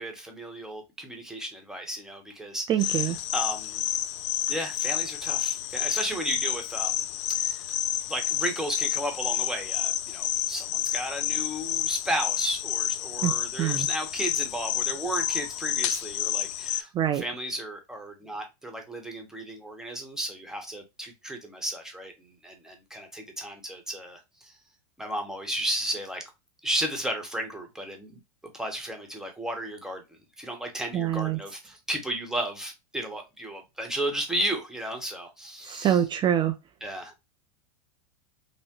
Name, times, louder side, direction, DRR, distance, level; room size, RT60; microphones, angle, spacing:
voice 1, 0.0-3.8 4.5-7.6 8.1-22.1 22.4-24.2 25.0-26.2 26.6-28.2 28.5-30.0 30.4-36.0 36.8-37.2, right 1 dB, 5° right, 1.0 m, -34 dB
voice 2, 2.7-3.2 13.2-13.9 16.9-17.2 30.9-31.4 35.7-36.5, right 10 dB, 25° right, 0.4 m, -25 dB
sound 1, 2.8-16.8, left 12 dB, 55° left, 0.5 m, -29 dB
5.5 x 2.1 x 3.0 m
supercardioid pair, 130°, 18 cm